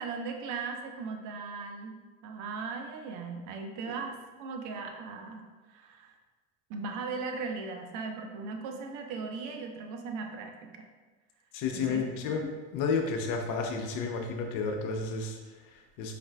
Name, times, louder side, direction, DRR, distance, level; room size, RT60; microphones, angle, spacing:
voice 1, 0.0-2.0 2.2-5.4 5.7-6.1 6.7-10.9 11.7-12.0, right 4 dB, 50° right, 3 dB, 0.6 m, -38 dB
voice 2, 11.5-12.5 12.7-16.1, left 5 dB, 55° left, 3 dB, 0.6 m, -32 dB
4.9 x 2.4 x 2.2 m, 1.3 s
hypercardioid pair, 80°, 38 cm